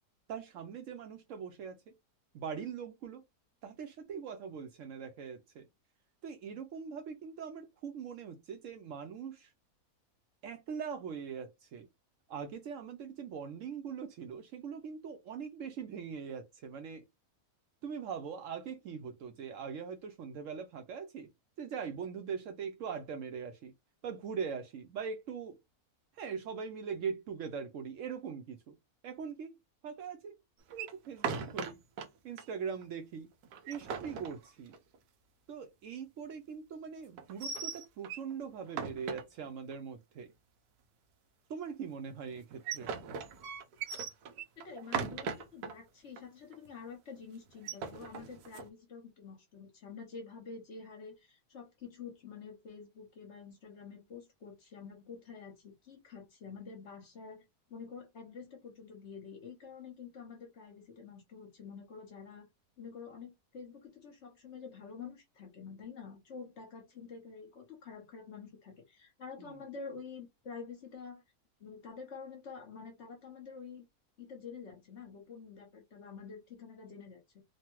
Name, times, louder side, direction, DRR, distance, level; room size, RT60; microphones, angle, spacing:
voice 1, 0.3-2.0 2.3-3.2 3.6-5.7 6.2-9.5 10.4-11.9 12.3-17.0 17.8-21.3 21.6-23.7 24.0-25.6 26.1-28.8 29.0-29.6 29.8-30.4 30.7-31.8 32.2-33.3 33.7-34.8 35.5-40.3 41.5-43.0 69.4-69.6, right 6 dB, 70° right, 0.8 m, -41 dB
sound 1, 30.7-32.1 32.4-32.5 32.8-32.9 33.4-35.0 37.2-38.3 38.7-39.7 42.3-45.7 46.2-46.3 46.5-46.9 47.5-48.7, right 6 dB, 85° right, 1.1 m, -39 dB
voice 2, 44.6-57.4 57.7-62.5 62.8-71.2 71.6-73.8 74.2-77.4, left 5 dB, 55° left, 1.0 m, -48 dB
3.1 x 2.2 x 2.9 m
omnidirectional pair, 1.6 m